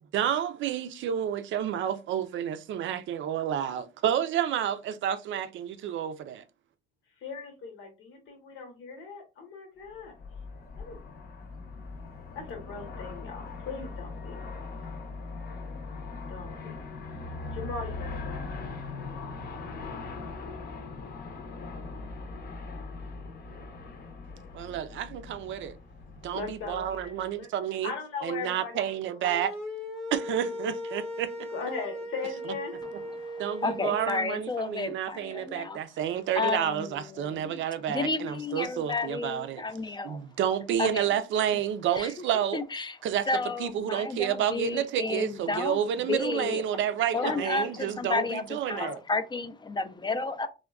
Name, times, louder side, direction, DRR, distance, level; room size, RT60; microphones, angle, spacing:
voice 1, 0.1-6.4 24.5-25.7 26.2-27.9 28.2-29.5 30.1-31.5 32.2-33.0 33.4-39.6 40.0-42.6 43.0-49.0, right 9 dB, 70° right, 0.4 m, -30 dB
voice 2, 7.2-10.1 10.8-11.0 12.3-14.5 16.3-16.7 17.5-18.7 26.3-27.5 27.8-29.3 30.2-30.7 31.5-32.8 47.2-47.9 48.7-49.0, left 5 dB, 85° left, 0.9 m, -39 dB
Aircraft, 10.0-27.2, left 3 dB, 50° left, 0.7 m, -40 dB
sound 1, 29.2-34.1, left 1 dB, 5° left, 0.7 m, -38 dB
voice 3, 33.2-35.8 36.3-40.2 40.8-41.1 41.9-43.0 43.3-45.8 46.1-46.6 47.1-50.5, left 3 dB, 20° left, 0.3 m, -32 dB
3.5 x 2.2 x 2.3 m
cardioid pair, 90°, 20 cm